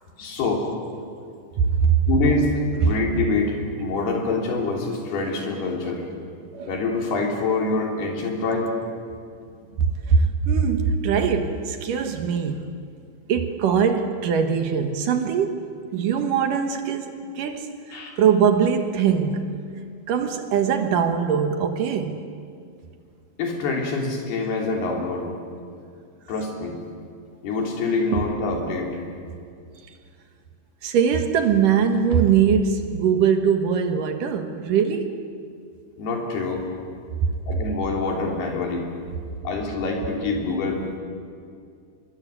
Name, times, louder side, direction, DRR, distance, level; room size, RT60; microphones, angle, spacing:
voice 1, 0.2-0.7 2.1-6.0 6.7-8.7 17.9-18.2 23.4-25.3 26.3-26.8 27.4-29.0 36.0-36.7 37.5-38.9 39.5-41.0, left 3 dB, 70° left, 5.3 m, -25 dB
voice 2, 1.6-2.0 2.8-3.0 6.5-6.7 10.1-12.7 13.3-17.7 18.2-19.5 20.1-22.2 30.8-35.2, right 7 dB, 65° right, 2.6 m, -21 dB
24.5 x 22.5 x 8.3 m
omnidirectional pair, 4.8 m